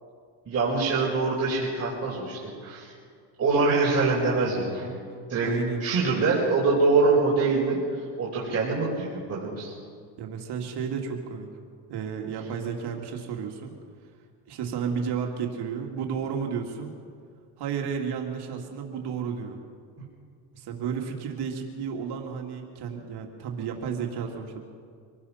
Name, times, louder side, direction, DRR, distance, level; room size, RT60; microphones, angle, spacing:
voice 1, 0.5-2.9 3.4-4.9 5.3-5.5 5.8-9.7, right 3 dB, 35° right, -5 dB, 4.5 m, -24 dB
voice 2, 5.4-5.8 10.2-11.5 11.9-13.7 14.5-16.9 17.6-19.6 20.5-24.6, right 6 dB, 60° right, 2 dB, 2.5 m, -32 dB
25.0 x 18.5 x 5.7 m, 2.1 s
cardioid pair, 115°, 44 cm